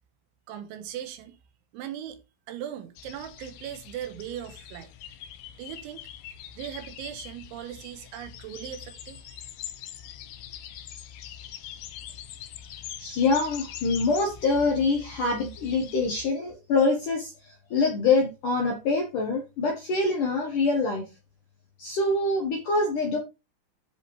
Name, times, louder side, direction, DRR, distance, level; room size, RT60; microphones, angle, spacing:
voice 1, 0.5-1.4 1.7-2.2 2.5-4.9 5.6-6.0 6.6-9.4, right 11 dB, 75° right, 3.3 m, -39 dB
sound 1, 3.0-16.2, left 10 dB, 90° left, 2.1 m, -43 dB
voice 2, 13.0-21.1 21.8-23.2, left 3 dB, 65° left, 2.1 m, -25 dB
13.5 x 5.1 x 3.3 m
omnidirectional pair, 5.8 m